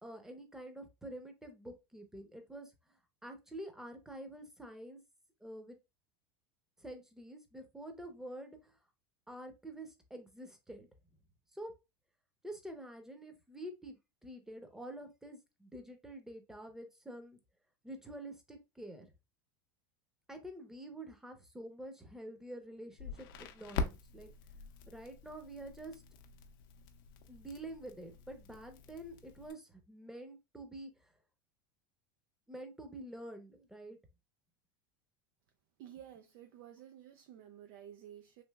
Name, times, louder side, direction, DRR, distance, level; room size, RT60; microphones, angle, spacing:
voice 1, 0.0-2.7 3.2-5.0 5.4-5.8 6.8-8.7 9.3-10.9 11.5-11.7 12.4-14.0 14.2-17.4 17.8-19.1 20.3-24.3 24.9-26.0 27.3-30.9 32.5-34.0, right 1 dB, 5° right, 0.7 m, -47 dB
Crackle, 23.0-29.5, left 4 dB, 70° left, 0.6 m, -44 dB
voice 2, 35.8-38.4, right 10 dB, 65° right, 0.4 m, -52 dB
3.2 x 2.9 x 2.3 m
supercardioid pair, 105°, 12 cm